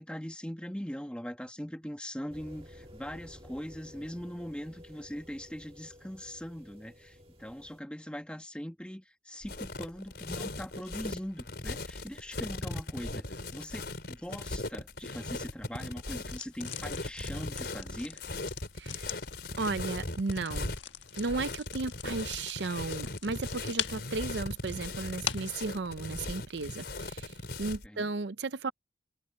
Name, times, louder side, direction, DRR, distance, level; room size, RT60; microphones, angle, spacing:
voice 1, 0.0-18.2 27.8-28.1, equal, 5° left, 1.7 m, -41 dB
sound 1, 2.3-7.8, equal, 30° right, 1.9 m, -53 dB
sound 2, 9.4-27.9, left 2 dB, 60° left, 4.8 m, -38 dB
sound 3, 16.2-25.6, left 10 dB, 85° left, 1.5 m, -42 dB
voice 2, 19.6-20.7 21.2-28.7, right 3 dB, 70° right, 0.6 m, -35 dB
head